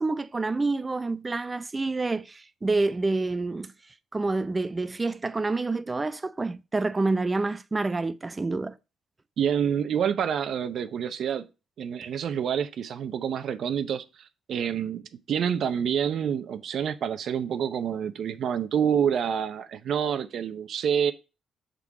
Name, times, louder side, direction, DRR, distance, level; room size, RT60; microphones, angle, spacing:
voice 1, 0.0-3.7 4.1-8.7, right 3 dB, 25° right, 0.5 m, -28 dB
voice 2, 9.4-11.5 11.8-15.0 15.3-21.1, right 8 dB, 65° right, 0.6 m, -27 dB
6.8 x 3.8 x 4.7 m
cardioid pair, 90°, 0 cm